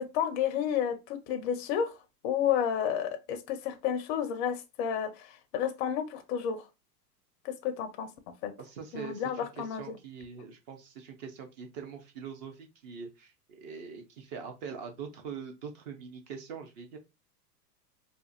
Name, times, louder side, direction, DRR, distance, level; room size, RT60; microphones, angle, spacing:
voice 1, 0.0-1.9 2.2-6.6 7.4-8.1 8.4-8.5 8.9-9.9, left 8 dB, 45° left, 0.4 m, -31 dB
voice 2, 8.6-17.0, right 6 dB, 30° right, 0.3 m, -43 dB
2.4 x 2.4 x 2.5 m
hypercardioid pair, 110°, 50 cm